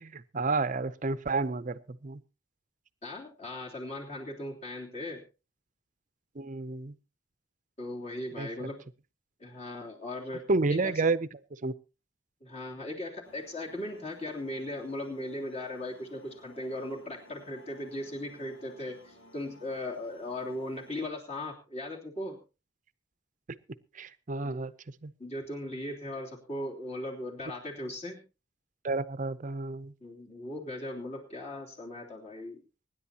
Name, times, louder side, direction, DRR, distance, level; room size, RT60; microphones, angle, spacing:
voice 1, 0.0-2.2 6.3-6.9 8.4-8.7 10.5-11.7 23.5-23.6 23.9-24.7 25.0-25.1 28.8-29.9, right 3 dB, 40° right, 15 dB, 0.6 m, -31 dB
voice 2, 3.0-5.2 7.8-8.8 9.4-10.9 12.4-22.4 24.4-24.6 25.2-28.2 30.0-32.6, left 1 dB, 35° left, -1 dB, 3.2 m, -38 dB
sound 1, 13.2-21.1, left 1 dB, 85° left, 3.8 m, -57 dB
24.5 x 10.5 x 2.9 m, 0.31 s
head